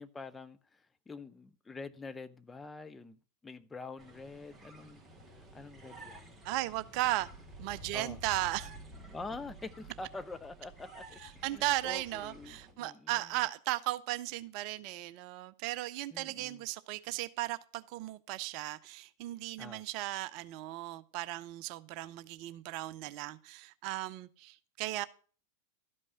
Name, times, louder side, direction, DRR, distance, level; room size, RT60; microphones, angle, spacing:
voice 1, 0.0-5.0 5.5-6.4 7.9-8.2 9.1-13.1 16.1-16.6 19.6-19.8, left 3 dB, 10° left, 0.6 m, -46 dB
sound 1, 4.0-12.7, right 1 dB, 10° right, 2.0 m, -51 dB
voice 2, 6.4-7.3 7.6-8.7 11.2-25.1, right 17 dB, 45° right, 0.5 m, -36 dB
12.5 x 5.4 x 6.1 m
figure-of-eight pair, 90°, 0 cm